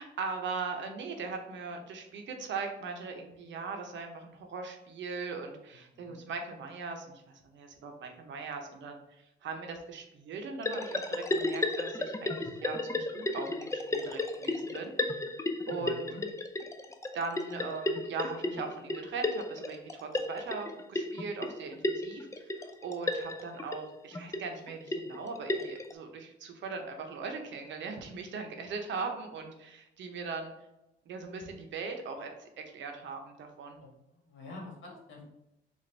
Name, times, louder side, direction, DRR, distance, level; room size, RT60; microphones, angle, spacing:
voice 1, 0.0-15.2 15.7-16.1 17.1-30.5 31.1-33.8, right 4 dB, 70° right, 4 dB, 0.8 m, -40 dB
sound 1, 10.6-25.9, left 2 dB, 15° left, 0.4 m, -34 dB
voice 2, 15.8-16.2 33.8-35.2, left 2 dB, 75° left, -2 dB, 1.5 m, -47 dB
4.1 x 2.5 x 3.3 m, 0.89 s
cardioid pair, 90°, 20 cm